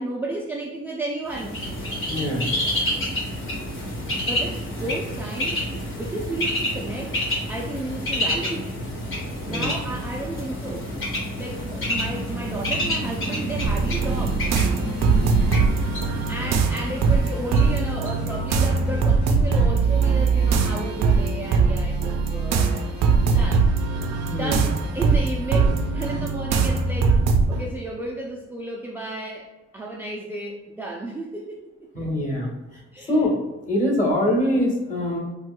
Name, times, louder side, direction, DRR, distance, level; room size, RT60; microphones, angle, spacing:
voice 1, 0.0-1.6 2.0-2.1 4.2-8.7 9.4-10.9 11.4-14.4 16.3-23.0 23.2-23.7 24.3-29.5 29.7-31.9 32.9-33.2, right 2 dB, 5° right, -1 dB, 0.4 m, -33 dB
Bird, 1.3-19.1, equal, 45° left, 1.5 m, -29 dB
voice 2, 2.1-2.5 9.5-9.7 24.3-24.6 31.9-32.5 33.1-33.4 33.6-35.2, left 1 dB, 25° left, -2 dB, 1.5 m, -23 dB
sound 1, 13.0-26.3, right 1 dB, 80° left, 1.0 m, -38 dB
sound 2, 13.6-27.7, right 4 dB, 60° right, 0.5 m, -21 dB
4.4 x 2.3 x 2.2 m, 1.1 s
cardioid pair, 90°, 30 cm